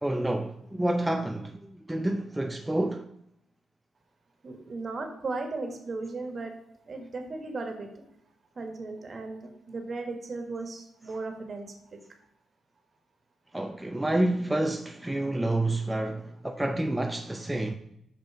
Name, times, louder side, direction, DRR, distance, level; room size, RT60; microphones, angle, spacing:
voice 1, 0.0-3.1 13.5-17.7, right 1 dB, 10° right, 0.5 m, -29 dB
voice 2, 4.4-6.5 6.9-7.9 8.6-9.4 9.7-11.7, right 3 dB, 45° right, 1.5 m, -36 dB
5.7 x 5.4 x 4.9 m
cardioid pair, 65°, 0 cm